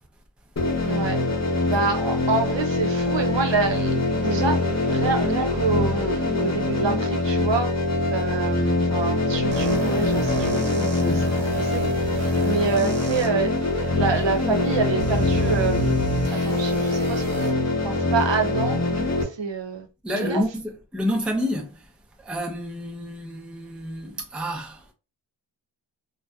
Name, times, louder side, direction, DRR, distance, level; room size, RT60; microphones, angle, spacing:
sound 1, 0.6-19.2, left 2 dB, 35° left, 0.7 m, -24 dB
voice 1, 0.8-1.2 1.7-7.7 8.1-12.2 12.4-15.9 16.3-20.4, right 5 dB, 65° right, 0.6 m, -27 dB
sound 2, 9.5-13.3 14.0-14.1 15.0-17.5, right 1 dB, 80° right, 0.9 m, -30 dB
voice 2, 20.0-21.9 22.2-24.8, equal, ahead, 0.4 m, -29 dB
2.6 x 2.1 x 2.2 m
wide cardioid pair, 75°, 48 cm